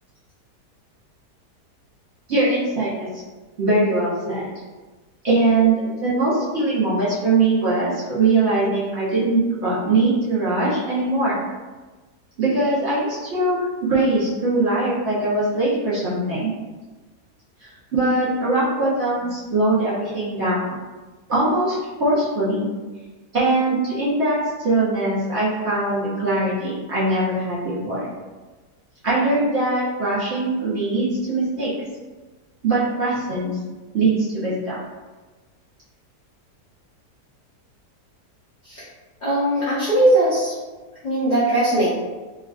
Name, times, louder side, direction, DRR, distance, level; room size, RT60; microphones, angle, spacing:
voice 1, 2.3-3.1 3.6-4.5 5.2-11.4 12.4-16.5 17.9-20.8 21.3-22.7 23.3-24.4 24.6-28.1 29.0-31.7 32.6-33.6 33.9-34.8, right 2 dB, 60° right, -9 dB, 0.7 m, -21 dB
voice 2, 39.2-40.5 41.0-41.9, right 1 dB, 60° left, -10 dB, 0.4 m, -19 dB
3.3 x 2.4 x 2.3 m, 1.3 s
omnidirectional pair, 1.8 m